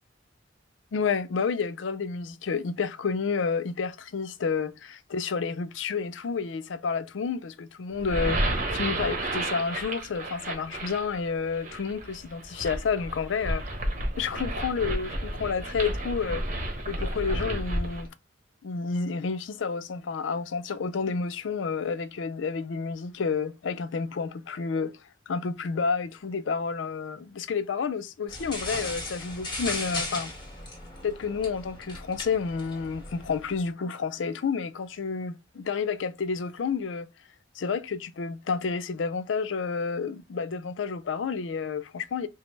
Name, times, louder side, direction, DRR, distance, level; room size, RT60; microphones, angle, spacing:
voice 1, 0.9-13.6 14.2-16.4 16.9-18.1 18.6-24.9 25.3-30.3 31.0-37.1 37.6-42.3, left 5 dB, 85° left, 0.4 m, -30 dB
sound 1, 7.9-18.1, right 1 dB, 45° right, 0.9 m, -32 dB
sound 2, 28.3-33.6, left 2 dB, 25° left, 1.7 m, -37 dB
5.1 x 2.0 x 3.2 m
head